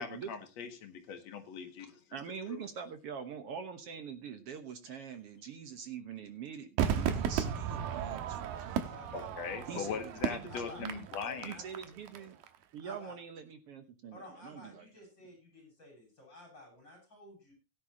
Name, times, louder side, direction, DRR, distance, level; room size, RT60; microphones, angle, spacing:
voice 1, 0.0-2.2 2.5-2.6 9.1-11.6, left 6 dB, 55° left, 6 dB, 2.5 m, -41 dB
voice 2, 2.1-8.8 9.7-11.1 11.4-12.4 12.7-14.8, right 7 dB, 65° right, 8 dB, 1.5 m, -44 dB
Crowd / Fireworks, 6.8-12.2 12.4-12.5, right 8 dB, 80° right, 2.9 m, -35 dB
voice 3, 8.8-10.0 10.5-10.9 11.2-11.9 12.8-13.2 14.1-17.5, left 1 dB, 30° left, 2 dB, 6.4 m, -52 dB
17.0 x 10.5 x 2.9 m, 0.29 s
omnidirectional pair, 4.1 m